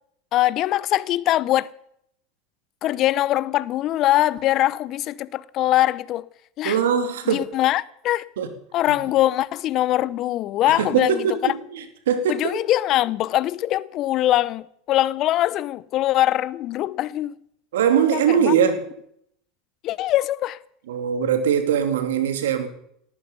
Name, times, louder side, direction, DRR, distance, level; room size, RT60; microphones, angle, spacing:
voice 1, 0.3-1.7 2.8-6.3 6.6-6.8 7.3-8.3 8.7-11.5 12.3-17.4 18.1-18.5 19.8-20.6, left 14 dB, 50° left, 0.8 m, -22 dB
voice 2, 6.6-7.4 8.4-8.5 10.7-11.8 12.1-12.6 17.7-18.8 20.9-22.7, right 8 dB, 80° right, 2.8 m, -21 dB
18.5 x 14.0 x 5.5 m
hypercardioid pair, 90°, 0 cm